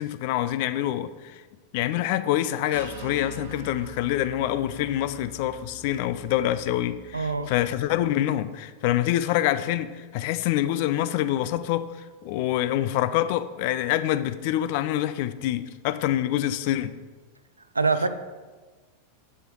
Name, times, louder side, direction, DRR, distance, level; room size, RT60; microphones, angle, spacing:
voice 1, 0.0-1.4 1.7-11.9 12.2-17.0, left 13 dB, 45° left, 0.5 m, -26 dB
sound 1, 2.7-8.1, right 2 dB, 65° right, 1.1 m, -45 dB
voice 2, 7.1-7.5 17.7-18.1, right 4 dB, 80° right, 0.6 m, -24 dB
7.9 x 7.8 x 4.7 m
figure-of-eight pair, 90°, 0 cm